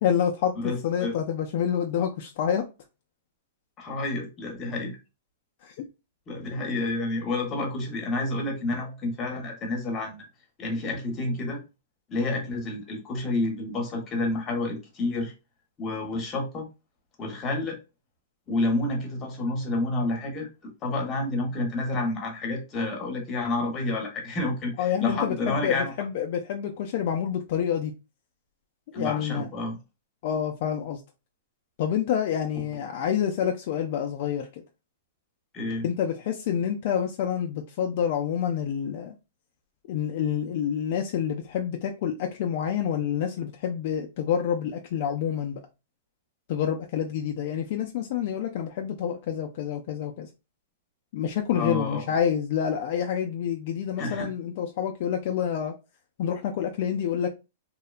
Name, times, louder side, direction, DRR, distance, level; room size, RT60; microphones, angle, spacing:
voice 1, 0.0-0.6 0.8-2.6 5.6-5.7 24.8-27.9 28.9-29.5 30.2-31.0 31.8-34.5 35.8-39.1 39.9-45.6 46.5-50.3 51.1-55.7 56.2-57.3, left 8 dB, 55° left, 0.3 m, -28 dB
voice 2, 0.6-1.1 3.8-5.0 6.3-10.3 10.6-11.6 12.1-15.3 15.8-16.7 17.2-17.8 18.5-20.5 20.8-25.9 28.9-29.8 35.5-35.8 51.5-52.1 54.0-54.3, left 2 dB, 25° left, 0.9 m, -29 dB
2.7 x 2.1 x 2.4 m
hypercardioid pair, 140°, 0 cm